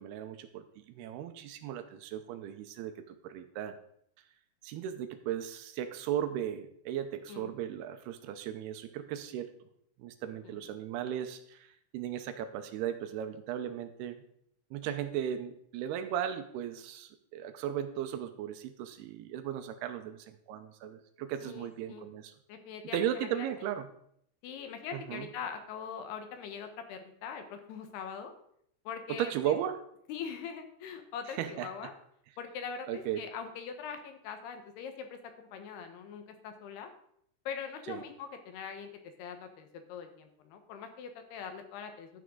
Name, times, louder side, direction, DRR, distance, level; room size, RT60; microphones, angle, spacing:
voice 1, 0.0-3.8 4.6-9.5 10.0-11.7 11.9-14.2 14.7-22.3 22.9-23.9 24.9-25.3 29.1-29.8 31.3-31.7 32.9-33.3 37.9-38.0, right 10 dB, 85° right, 9 dB, 2.5 m, -36 dB
voice 2, 21.4-22.1 22.5-23.5 24.4-28.3 28.9-29.6 30.1-31.9 32.4-36.9 37.5-38.9 39.2-42.1, left 7 dB, 75° left, 7 dB, 3.0 m, -42 dB
12.0 x 9.3 x 3.8 m, 0.70 s
omnidirectional pair, 4.9 m